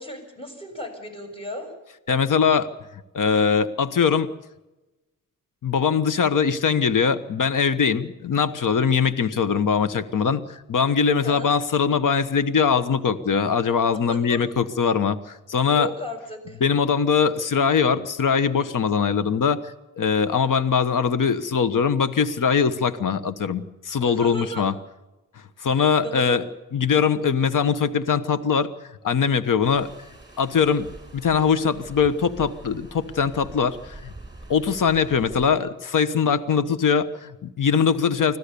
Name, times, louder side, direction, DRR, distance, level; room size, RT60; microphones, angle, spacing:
voice 1, 0.0-1.7 11.2-11.5 14.1-14.4 15.7-16.6 24.0-24.6 26.0-26.4, equal, 15° left, 4 dB, 6.7 m, -35 dB
voice 2, 2.1-2.7 3.1-4.3 5.6-15.9 16.6-24.7 25.6-26.4 26.7-28.7 29.0-29.9 30.4-34.1 34.5-38.4, left 6 dB, 70° left, 12 dB, 1.3 m, -22 dB
sound 1, 29.6-35.5, right 2 dB, 10° right, 6.8 m, -44 dB
25.5 x 16.0 x 7.0 m, 1.0 s
wide cardioid pair, 110°, 33 cm